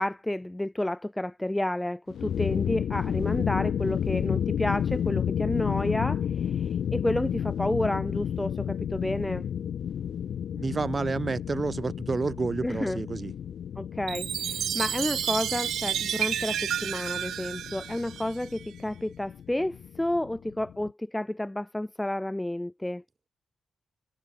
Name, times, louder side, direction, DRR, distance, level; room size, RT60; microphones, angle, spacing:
voice 1, 0.0-9.5 12.6-13.0 13.8-23.0, left 1 dB, 10° left, 1.4 m, -30 dB
sound 1, 2.1-20.9, left 9 dB, 75° left, 2.2 m, -32 dB
voice 2, 10.5-13.3, right 4 dB, 40° right, 3.8 m, -29 dB
Chime, 14.1-18.6, right 10 dB, 80° right, 1.6 m, -31 dB
supercardioid pair, 50°, 0 cm